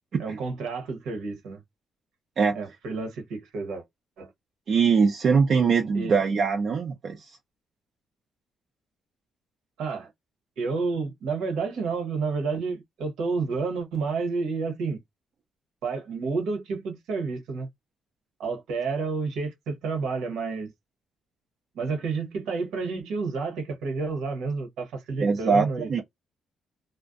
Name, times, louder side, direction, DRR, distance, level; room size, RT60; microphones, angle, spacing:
voice 1, 0.2-1.6 2.5-3.8 4.2-4.3 5.9-6.2 9.8-10.1 10.6-15.0 15.8-17.7 18.4-20.7 21.7-26.0, right 4 dB, 85° right, 0.9 m, -30 dB
voice 2, 4.7-7.3 25.2-26.0, right 5 dB, 55° right, 0.5 m, -22 dB
2.4 x 2.1 x 2.5 m
cardioid pair, 90°, 0 cm